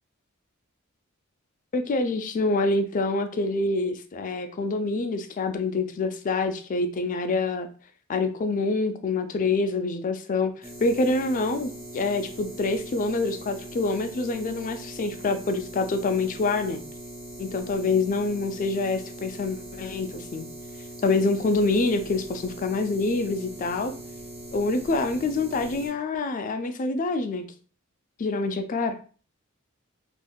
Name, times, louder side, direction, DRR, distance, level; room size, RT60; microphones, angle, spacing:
voice 1, 1.7-7.7 8.1-16.8 17.4-20.5 21.0-23.9 24.5-27.4 28.2-29.0, left 3 dB, 40° left, 8 dB, 0.4 m, -26 dB
sound 1, 10.6-25.9, right 1 dB, 30° right, 1.3 m, -41 dB
3.4 x 2.6 x 2.2 m, 0.39 s
head